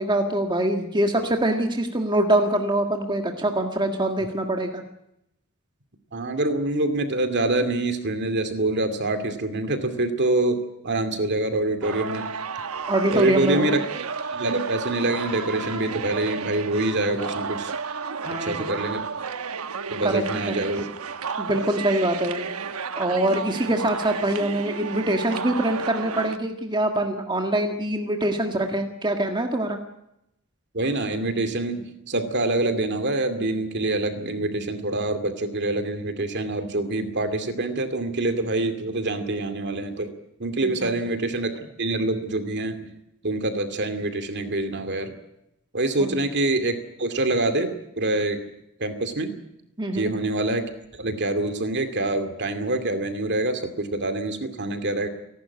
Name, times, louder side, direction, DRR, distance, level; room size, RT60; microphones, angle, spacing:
voice 1, 0.0-4.8 12.9-13.8 18.2-18.7 20.0-20.2 21.4-22.5 22.9-29.8 40.6-40.9 46.0-46.2 49.8-50.1, right 1 dB, 20° right, 4 dB, 1.7 m, -24 dB
voice 2, 6.1-12.3 13.1-13.8 14.3-17.7 18.3-19.1 19.9-20.9 30.7-40.1 40.4-42.9 43.2-45.1 45.7-48.4 48.8-49.4 49.9-55.1, right 2 dB, 50° right, 8 dB, 2.4 m, -26 dB
sound 1, 11.8-26.4, right 5 dB, 80° right, 1.1 m, -32 dB
29.5 x 12.0 x 9.7 m, 0.84 s
head